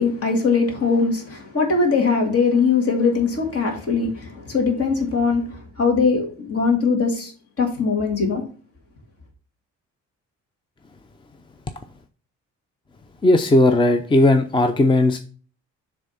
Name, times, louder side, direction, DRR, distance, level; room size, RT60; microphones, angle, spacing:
voice 1, 0.0-7.3 7.6-8.4, left 4 dB, 50° left, 2.3 m, -21 dB
voice 2, 13.2-15.2, left 2 dB, 15° left, 0.5 m, -16 dB
7.2 x 3.5 x 5.6 m
cardioid pair, 90°, 30 cm